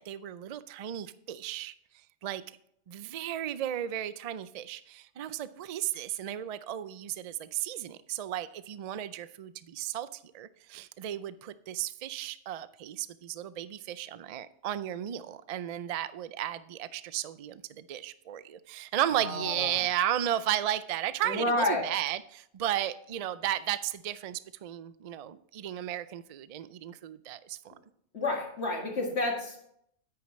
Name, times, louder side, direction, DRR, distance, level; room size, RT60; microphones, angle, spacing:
voice 1, 0.0-1.7 2.2-2.6 2.9-27.7, right 11 dB, 75° right, 15 dB, 0.3 m, -34 dB
voice 2, 19.1-19.8 21.2-21.9 28.1-29.6, left 2 dB, 60° left, 0 dB, 2.2 m, -30 dB
9.7 x 9.3 x 3.1 m, 0.71 s
omnidirectional pair, 1.3 m